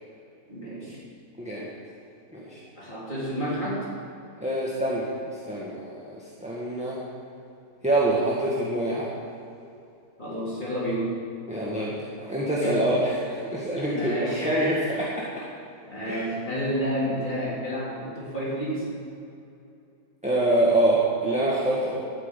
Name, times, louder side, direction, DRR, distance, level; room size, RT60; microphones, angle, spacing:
voice 1, 0.5-1.0 2.8-3.9 10.2-11.1 12.6-12.8 13.8-14.5 15.9-18.9, equal, 25° left, -8 dB, 3.6 m, -30 dB
voice 2, 1.4-1.7 2.3-2.6 4.4-7.0 7.8-9.1 11.5-15.2 16.1-16.2 20.2-22.0, right 1 dB, 5° right, -6 dB, 1.5 m, -25 dB
13.0 x 6.1 x 9.1 m, 2.6 s
omnidirectional pair, 1.9 m